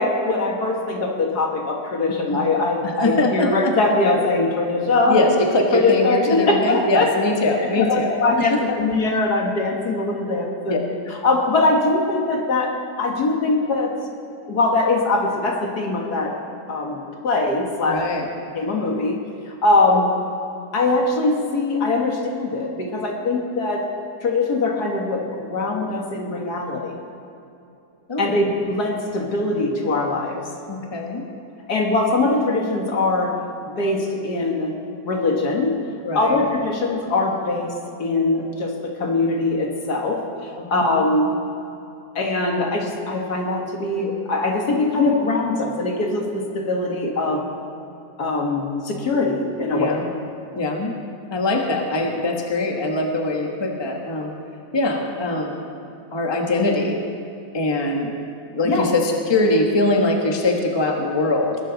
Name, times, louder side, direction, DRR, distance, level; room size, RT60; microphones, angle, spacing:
voice 1, 0.0-5.3 5.7-7.1 7.8-12.7 13.0-13.9 14.5-16.3 16.7-18.0 18.5-19.2 19.6-20.1 20.7-23.8 24.2-26.9 28.2-30.4 31.7-33.3 33.8-34.7 35.1-35.7 36.1-37.7 38.0-38.7 39.0-40.2 40.7-41.3 42.2-47.4 48.2-50.0 58.6-58.9, left 2 dB, 65° left, 1 dB, 2.1 m, -21 dB
voice 2, 2.8-3.7 5.1-8.7 10.7-10.8 17.8-18.3 28.1-28.4 30.7-31.2 36.0-36.4 40.6-41.1 49.7-50.1 50.5-50.9 51.3-54.3 54.7-55.6 56.1-57.0 57.5-58.1 58.5-61.6, left 2 dB, 15° left, 1 dB, 1.2 m, -22 dB
20.5 x 12.0 x 4.0 m, 2.7 s
omnidirectional pair, 1.9 m